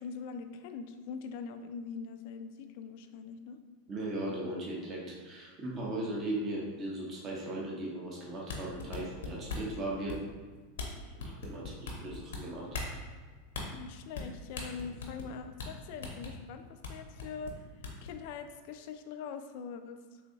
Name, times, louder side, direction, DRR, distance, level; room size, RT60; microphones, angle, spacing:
voice 1, 0.0-3.6 13.7-20.2, left 5 dB, 60° left, 8 dB, 0.3 m, -43 dB
voice 2, 3.9-10.2 11.1-13.0, right 1 dB, 35° right, -4 dB, 0.8 m, -38 dB
sound 1, 8.3-9.7 10.1-10.4 10.8-10.9 11.2-12.4 12.7-12.9 13.5-13.7 14.1-14.3 14.6-15.3 15.6-15.7 16.0-16.3 16.8-16.9 17.2-18.1, left 4 dB, 80° left, 0.7 m, -39 dB
3.8 x 2.7 x 2.7 m, 1.4 s
hypercardioid pair, 110°, 0 cm